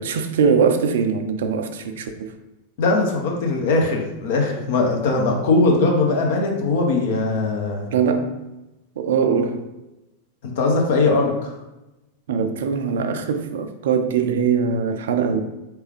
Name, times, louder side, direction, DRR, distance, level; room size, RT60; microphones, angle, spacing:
voice 1, 0.0-2.3 7.9-8.4 9.0-9.6 12.3-15.4, right 6 dB, 60° right, 0.4 m, -21 dB
voice 2, 2.8-7.9 10.4-11.6, left 3 dB, 55° left, 0.9 m, -20 dB
4.6 x 3.3 x 3.2 m
figure-of-eight pair, 90°, 0 cm